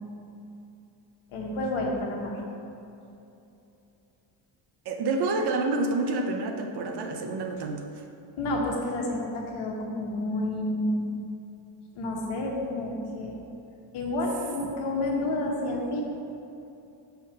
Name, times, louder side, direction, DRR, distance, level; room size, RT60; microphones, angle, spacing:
voice 1, 1.3-2.4 8.4-11.1 12.0-13.4 13.9-16.0, left 1 dB, 85° left, -1 dB, 1.2 m, -29 dB
voice 2, 4.9-7.9 14.6-14.7, right 3 dB, 55° right, 4 dB, 0.6 m, -28 dB
6.2 x 5.6 x 2.7 m, 2.8 s
cardioid pair, 150°, 50 cm